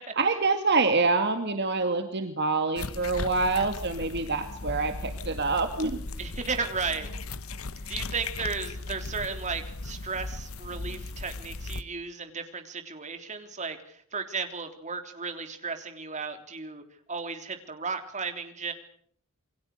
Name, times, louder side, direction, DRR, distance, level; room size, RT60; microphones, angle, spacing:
voice 1, 0.2-6.0, right 3 dB, 55° right, 6 dB, 2.1 m, -26 dB
sound 1, 2.8-11.8, left 3 dB, 80° left, 1.1 m, -37 dB
voice 2, 6.2-7.1 7.9-16.8 17.1-18.7, right 5 dB, 35° right, 7 dB, 3.4 m, -34 dB
28.5 x 23.5 x 6.6 m, 0.62 s
head